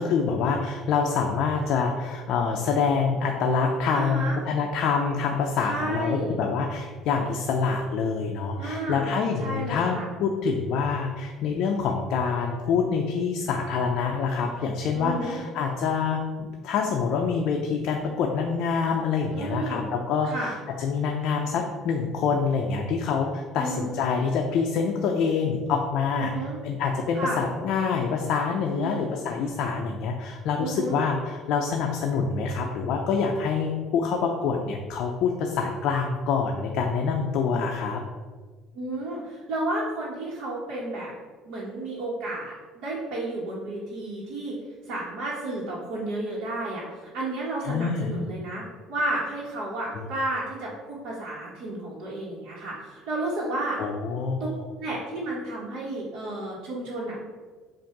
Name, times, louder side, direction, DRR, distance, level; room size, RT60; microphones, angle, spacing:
voice 1, 0.0-26.3 26.6-38.0 47.6-48.2 49.9-50.0 53.8-54.5, left 5 dB, 50° left, 1 dB, 0.6 m, -26 dB
voice 2, 3.9-4.4 5.6-6.4 8.6-9.1 9.4-10.0 14.9-15.4 19.3-19.8 20.2-20.5 23.6-23.9 26.2-26.6 27.1-27.4 28.7-29.0 30.6-31.0 38.7-41.1 41.4-44.6 44.9-48.6 48.9-53.8 54.8-57.3, right 1 dB, 60° right, -7 dB, 1.3 m, -32 dB
7.5 x 2.6 x 5.9 m, 1.4 s
cardioid pair, 180°, 0 cm